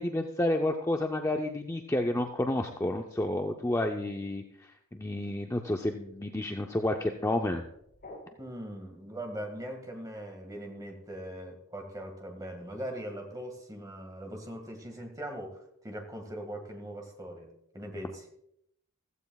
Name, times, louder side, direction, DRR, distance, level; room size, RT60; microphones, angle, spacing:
voice 1, 0.0-7.6, left 1 dB, 15° left, 3 dB, 0.5 m, -30 dB
sound 1, 7.0-8.7, left 2 dB, 40° left, 5.8 m, -49 dB
voice 2, 8.4-18.3, right 1 dB, 15° right, 3 dB, 1.8 m, -41 dB
15.0 x 14.5 x 2.3 m, 0.74 s
head